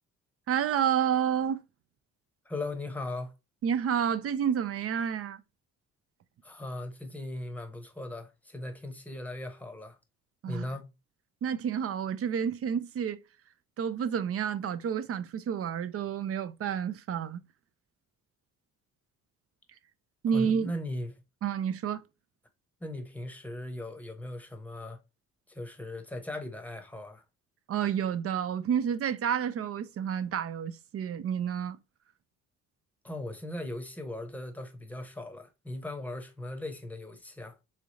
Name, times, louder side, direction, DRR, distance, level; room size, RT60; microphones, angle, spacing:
voice 1, 0.5-1.6 3.6-5.4 10.4-10.7 11.4-13.2 13.8-17.4 20.2-20.7 21.4-22.0 27.7-31.8, right 8 dB, 50° right, 0.5 m, -30 dB
voice 2, 2.4-3.3 6.4-10.0 10.5-10.9 20.3-21.2 22.8-25.0 25.5-27.2 33.0-37.6, left 1 dB, 5° left, 0.8 m, -38 dB
3.7 x 3.2 x 2.6 m
cardioid pair, 90°, 30 cm